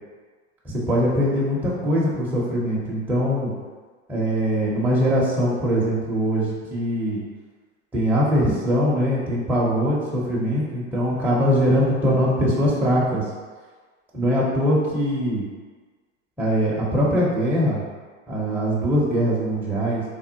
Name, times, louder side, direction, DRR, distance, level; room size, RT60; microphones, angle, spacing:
voice 1, 0.6-3.5 4.1-7.2 7.9-13.2 14.1-15.4 16.4-17.8 18.3-20.0, equal, 5° right, -6 dB, 0.5 m, -22 dB
3.5 x 2.1 x 2.7 m, 1.4 s
hypercardioid pair, 105°, 40 cm